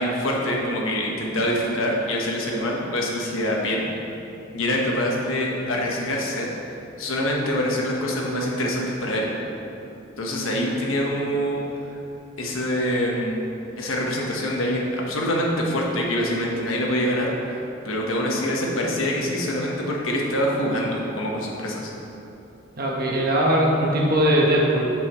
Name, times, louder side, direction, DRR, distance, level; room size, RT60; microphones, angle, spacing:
voice 1, 0.0-3.9 4.5-6.5 7.0-9.3 10.2-11.6 12.4-13.4 13.8-17.6 17.8-21.9, equal, 90° left, -2 dB, 1.2 m, -25 dB
voice 2, 22.8-24.8, equal, 50° right, -3 dB, 1.2 m, -20 dB
8.0 x 6.8 x 3.1 m, 2.9 s
head